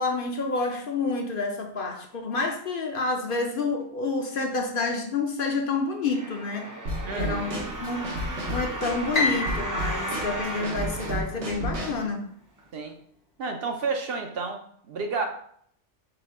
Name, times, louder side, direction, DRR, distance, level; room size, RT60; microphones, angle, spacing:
voice 1, 0.0-6.7 7.1-8.1 8.5-12.2, left 3 dB, 55° left, 3 dB, 0.7 m, -29 dB
sound 1, 6.0-12.0 12.6-12.7, right 1 dB, 25° right, 0.5 m, -35 dB
Drum kit / Snare drum, 6.9-12.1, right 1 dB, 85° right, 1.4 m, -33 dB
voice 2, 7.0-7.5 12.7-12.9 13.4-15.3, right 4 dB, 65° right, 4 dB, 0.8 m, -31 dB
Piano, 9.1-11.4, left 3 dB, 75° left, 1.7 m, -30 dB
4.9 x 2.3 x 4.7 m, 0.63 s
omnidirectional pair, 1.2 m